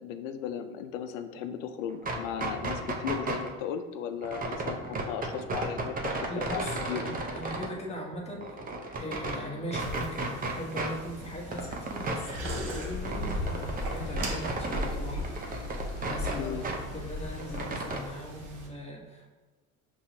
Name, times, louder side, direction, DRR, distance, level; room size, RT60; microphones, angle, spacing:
voice 1, 0.0-6.6 6.9-7.0 16.3-16.7, left 8 dB, 85° left, 9 dB, 0.5 m, -36 dB
sound 1, 1.9-3.5 4.2-7.7 8.1-9.4 9.7-10.9 11.2-14.9 15.2-16.8 17.1-18.0, right 2 dB, 25° right, 0.6 m, -34 dB
voice 2, 6.3-8.6 9.0-15.3 16.0-19.3, equal, 15° left, -2 dB, 1.0 m, -39 dB
sound 2, 9.8-18.7, right 1 dB, 55° right, 1.1 m, -42 dB
sound 3, 12.4-17.7, left 2 dB, 40° left, 1.1 m, -36 dB
5.4 x 3.0 x 2.7 m, 1.3 s
supercardioid pair, 85°, 38 cm